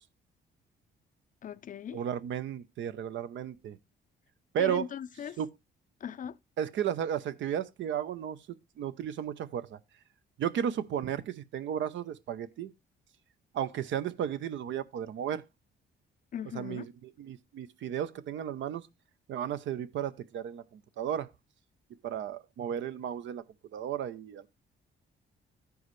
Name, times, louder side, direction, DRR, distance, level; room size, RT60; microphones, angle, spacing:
voice 1, 1.4-2.0 4.6-5.4 6.0-6.4 16.3-16.9, left 9 dB, 40° left, 0.4 m, -39 dB
voice 2, 1.9-3.8 4.5-4.9 5.4-5.5 6.6-9.8 10.4-12.7 13.5-15.4 16.5-18.8 19.3-21.3 22.0-23.4 23.7-24.5, right 9 dB, 70° right, 0.7 m, -34 dB
14.0 x 4.7 x 3.1 m
cardioid pair, 90°, 20 cm